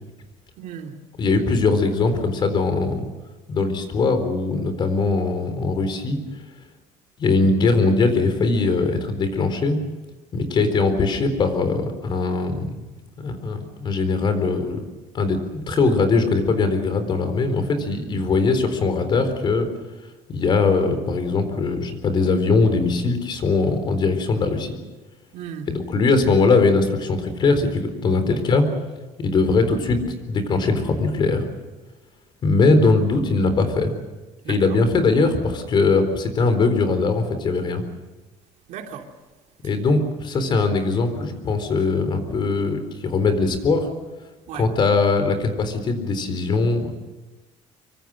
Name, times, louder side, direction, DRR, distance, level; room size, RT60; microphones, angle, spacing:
voice 1, 0.6-1.0 25.3-25.7 34.4-34.8 38.7-39.1 39.6-39.8 44.5-44.7, right 8 dB, 70° right, 3.1 m, -36 dB
voice 2, 1.2-3.1 3.5-6.2 7.2-9.8 10.3-12.8 13.2-14.8 15.1-19.7 20.3-24.8 25.7-28.6 29.2-31.4 32.4-33.9 34.5-37.8 39.6-43.9 44.6-46.9, left 3 dB, 35° left, 4.1 m, -21 dB
25.0 x 24.5 x 6.4 m
cardioid pair, 155°, 13 cm